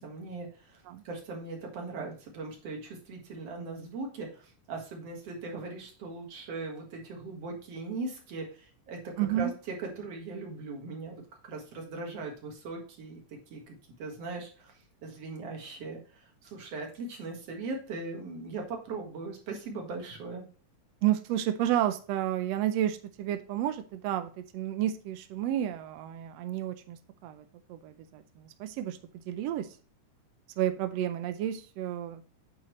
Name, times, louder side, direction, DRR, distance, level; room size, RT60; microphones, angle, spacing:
voice 1, 0.0-9.0 9.3-11.2 11.5-13.2 13.5-14.7 15.0-20.5, right 3 dB, 55° right, 1 dB, 2.6 m, -39 dB
voice 2, 9.2-9.5 21.0-27.0 27.2-27.4 27.7-29.0 29.3-29.7 30.6-32.2, right 12 dB, 90° right, 8 dB, 1.4 m, -31 dB
8.6 x 5.8 x 3.1 m, 0.37 s
omnidirectional pair, 3.7 m